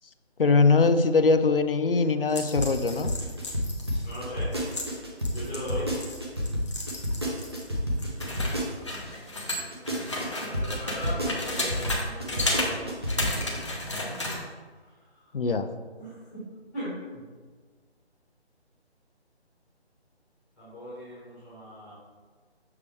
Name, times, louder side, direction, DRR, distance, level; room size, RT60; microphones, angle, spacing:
voice 1, 0.4-3.1 15.3-15.7, left 4 dB, 55° left, 9 dB, 0.5 m, -22 dB
sound 1, 2.3-7.7 8.0-12.0 12.3-12.7 13.1-14.4, left 2 dB, 25° left, 0.8 m, -33 dB
sound 2, 2.4-9.1 9.5-13.6, equal, 25° right, 0.7 m, -29 dB
voice 2, 4.0-4.6 5.3-5.9 10.5-13.4 14.8-15.3 16.0-16.5 16.7-17.2 20.6-21.9, equal, 5° left, -15 dB, 1.2 m, -39 dB
7.0 x 4.7 x 3.3 m, 1.4 s
figure-of-eight pair, 170°, 33 cm